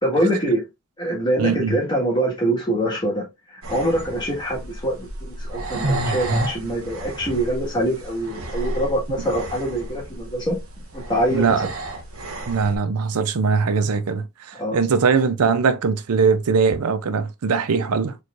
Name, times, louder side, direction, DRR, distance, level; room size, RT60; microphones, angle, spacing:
voice 1, 0.0-0.6 1.0-5.1 5.4-10.6 10.9-11.6 14.6-14.8, right 1 dB, 20° left, 1.5 m, -24 dB
voice 2, 1.4-1.7 11.3-11.7 12.5-18.2, right 5 dB, 85° right, 0.5 m, -21 dB
sound 1, 3.6-12.8, right 1 dB, 70° right, 1.0 m, -30 dB
4.3 x 3.1 x 2.4 m
head